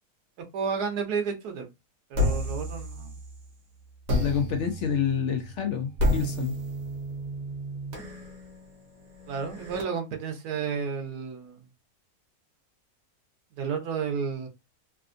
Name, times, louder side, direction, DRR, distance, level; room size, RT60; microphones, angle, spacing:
voice 1, 0.5-1.7 2.1-3.1 9.3-11.6 13.6-14.5, right 6 dB, 90° right, 1.3 m, -31 dB
sound 1, 2.1-3.5 4.1-9.8, left 1 dB, 65° right, 1.5 m, -31 dB
voice 2, 4.2-6.5, left 7 dB, 65° left, 0.7 m, -28 dB
3.3 x 2.4 x 2.5 m
omnidirectional pair, 1.6 m